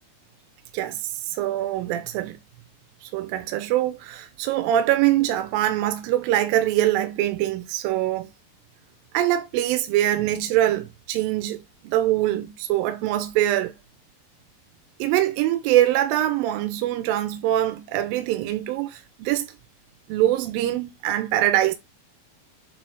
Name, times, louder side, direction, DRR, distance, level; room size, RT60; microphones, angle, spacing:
voice 1, 0.7-2.4 3.0-8.3 9.1-13.7 15.0-19.5 20.1-21.7, right 13 dB, 90° right, 2.4 m, -23 dB
8.7 x 3.7 x 3.5 m
omnidirectional pair, 4.1 m